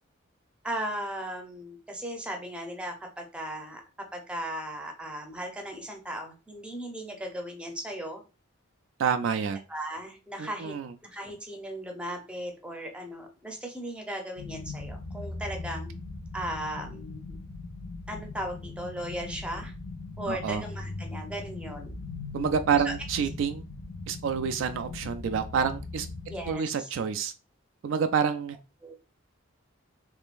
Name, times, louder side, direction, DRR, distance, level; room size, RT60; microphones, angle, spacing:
voice 1, 0.6-3.8 4.1-8.2 9.7-10.7 11.1-15.9 16.3-17.4 18.1-19.7 20.2-21.9 22.8-22.9 26.3-26.9 28.8-28.9, right 1 dB, 5° right, 2 dB, 0.7 m, -37 dB
voice 2, 9.0-9.6 10.4-10.9 20.3-20.6 22.3-23.7 24.1-26.1 26.5-27.3 27.8-28.6, right 6 dB, 65° right, 9 dB, 0.3 m, -28 dB
sound 1, 14.4-26.5, left 3 dB, 75° left, 0.6 m, -40 dB
3.6 x 3.2 x 2.5 m, 0.32 s
head